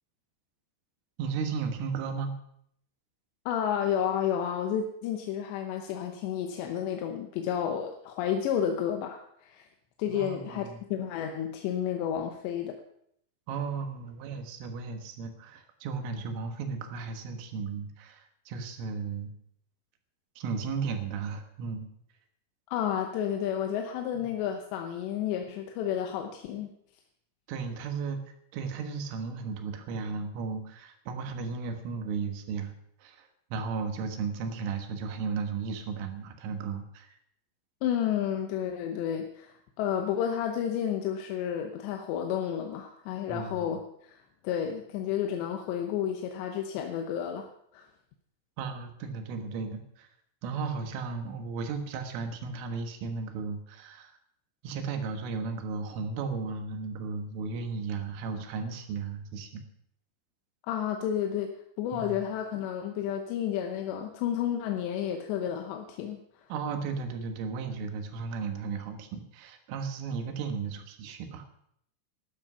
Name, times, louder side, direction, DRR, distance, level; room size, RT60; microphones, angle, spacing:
voice 1, 1.2-2.4 10.1-10.8 13.5-19.3 20.4-21.9 24.1-24.2 27.5-28.2 28.5-32.7 33.0-37.1 43.3-43.8 48.6-50.1 50.4-54.1 54.6-59.6 61.9-62.2 66.5-71.5, right 5 dB, 85° right, 6 dB, 4.0 m, -35 dB
voice 2, 3.5-9.7 10.0-12.8 22.7-26.7 37.8-47.9 60.7-61.5 61.8-66.5, left 9 dB, 75° left, 4 dB, 2.9 m, -31 dB
12.5 x 12.5 x 5.7 m, 0.71 s
omnidirectional pair, 5.6 m